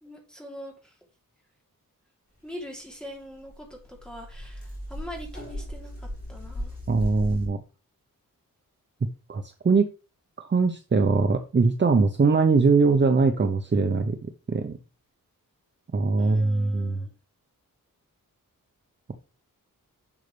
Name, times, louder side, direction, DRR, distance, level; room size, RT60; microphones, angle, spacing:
voice 1, 0.0-0.9 2.4-6.8 16.2-17.1, equal, ahead, 0 dB, 3.0 m, -42 dB
sound 1, 3.0-3.1 3.3-7.5, equal, 30° left, 4.9 m, -37 dB
voice 2, 6.9-7.6 9.3-9.9 10.4-14.2 14.5-14.8 15.9-17.0, right 4 dB, 35° right, 6 dB, 0.7 m, -22 dB
11.0 x 6.5 x 3.3 m, 0.32 s
wide cardioid pair, 150°, 34 cm